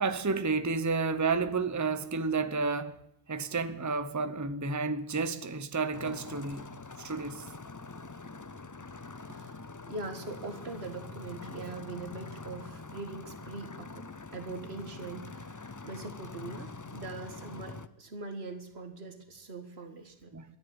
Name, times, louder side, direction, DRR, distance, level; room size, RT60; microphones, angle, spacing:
voice 1, 0.0-3.0 3.3-6.7 7.0-7.5 20.3-20.4, right 4 dB, 20° right, 0.8 m, -31 dB
sound 1, 5.9-17.9, left 3 dB, 25° left, 0.5 m, -44 dB
voice 2, 8.9-20.4, right 3 dB, 85° right, 2.0 m, -42 dB
13.0 x 10.5 x 9.6 m
omnidirectional pair, 1.0 m